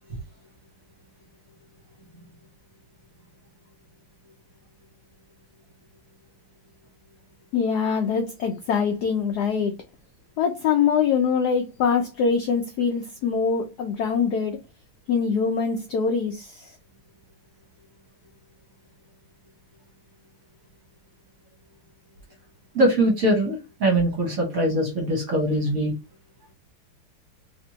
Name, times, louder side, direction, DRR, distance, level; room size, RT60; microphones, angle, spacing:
voice 1, 7.5-9.8 10.4-14.6 15.1-16.7, left 6 dB, 85° left, 0.8 m, -23 dB
voice 2, 22.7-25.9, right 1 dB, 50° right, 1.1 m, -22 dB
3.3 x 2.9 x 2.8 m
omnidirectional pair, 2.4 m